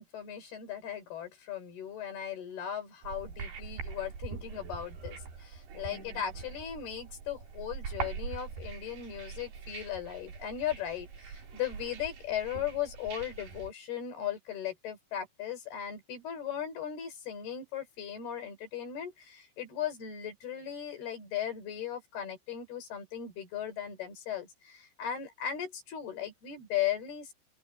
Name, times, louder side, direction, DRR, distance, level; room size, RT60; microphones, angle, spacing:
voice 1, 0.0-27.3, left 10 dB, 70° left, 6.0 m, -37 dB
sound 1, 3.0-13.7, right 5 dB, 75° right, 5.9 m, -43 dB
open air
omnidirectional pair, 4.7 m